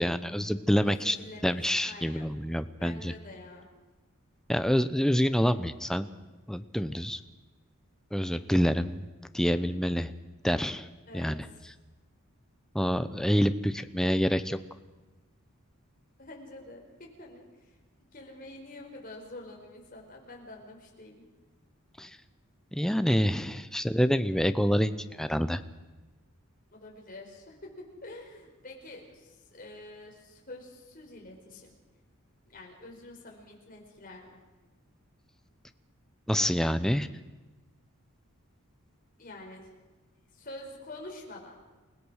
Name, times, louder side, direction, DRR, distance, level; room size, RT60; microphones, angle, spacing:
voice 1, 0.0-1.2 1.4-3.1 4.5-6.1 6.5-7.2 8.1-9.1 9.3-10.1 10.4-10.9 11.1-11.5 12.7-14.6 22.0-22.2 22.7-25.6 36.3-37.1, equal, ahead, 11 dB, 0.7 m, -27 dB
voice 2, 0.8-1.5 1.8-2.3 2.8-3.7 11.1-11.3 16.2-17.8 18.1-21.2 26.7-31.7 32.4-34.4 39.2-39.7 40.3-41.6, left 2 dB, 40° left, 0 dB, 4.9 m, -47 dB
29.5 x 17.5 x 6.5 m, 1.2 s
head